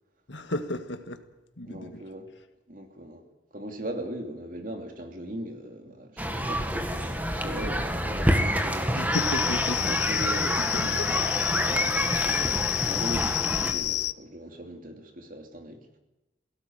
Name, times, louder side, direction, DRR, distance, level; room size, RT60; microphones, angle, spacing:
voice 1, 0.3-1.2 1.6-2.0 8.9-10.0 10.6-11.3, left 1 dB, 80° left, 1.9 m, -34 dB
voice 2, 1.7-2.3 2.7-3.2 3.5-9.0 9.8-10.9 11.6-15.9, right 1 dB, 45° right, 2.9 m, -39 dB
sound 1, 6.2-13.7, equal, 10° right, 1.8 m, -28 dB
sound 2, 9.1-14.1, left 15 dB, 65° left, 0.6 m, -29 dB
18.5 x 17.0 x 9.3 m
head